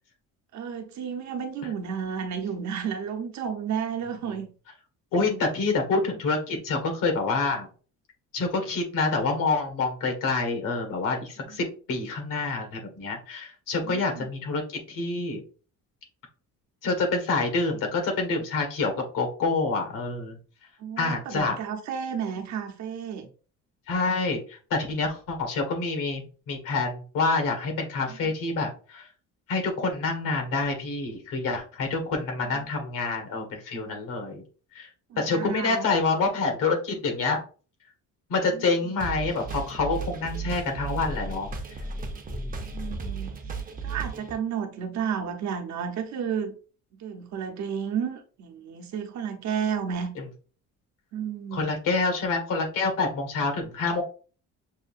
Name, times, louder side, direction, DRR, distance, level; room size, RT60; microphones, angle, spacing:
voice 1, 0.5-4.5 5.3-5.5 11.5-11.7 13.8-14.3 20.8-23.3 28.1-28.3 32.1-32.2 35.1-35.9 38.5-38.6 42.7-43.3 43.8-46.5 47.0-50.1 51.1-51.8, right 7 dB, 60° right, 0.9 m, -32 dB
voice 2, 5.1-7.7 8.3-15.4 16.8-20.4 21.0-21.6 23.9-29.1 29.5-34.4 34.7-34.9 35.2-37.4 38.3-41.5 42.3-42.7 50.2-50.3 51.5-54.0, left 3 dB, 80° left, 1.6 m, -27 dB
sound 1, 39.0-44.4, right 4 dB, 25° right, 0.6 m, -34 dB
6.4 x 2.7 x 2.5 m
cardioid pair, 160°, 32 cm